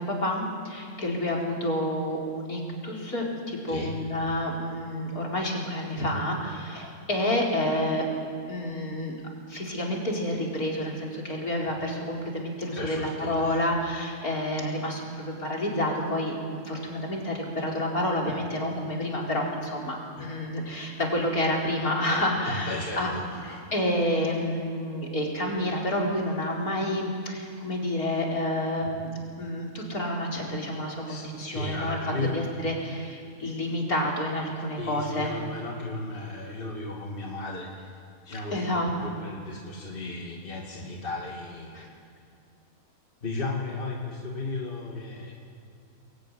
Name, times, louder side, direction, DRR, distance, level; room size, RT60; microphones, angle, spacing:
voice 1, 0.0-8.0 8.5-9.1 9.5-23.1 23.5-29.1 29.4-32.0 32.3-35.4 38.5-38.9 40.8-40.9 41.7-41.9, left 1 dB, 70° left, -2 dB, 4.9 m, -29 dB
voice 2, 12.8-13.6 18.2-18.3 20.2-20.3 22.4-23.7 31.1-32.4 34.8-38.0 38.3-38.7 39.0-41.9 43.2-45.3, left 2 dB, 35° left, -1 dB, 2.5 m, -35 dB
24.0 x 20.5 x 10.0 m, 2.4 s
omnidirectional pair, 1.6 m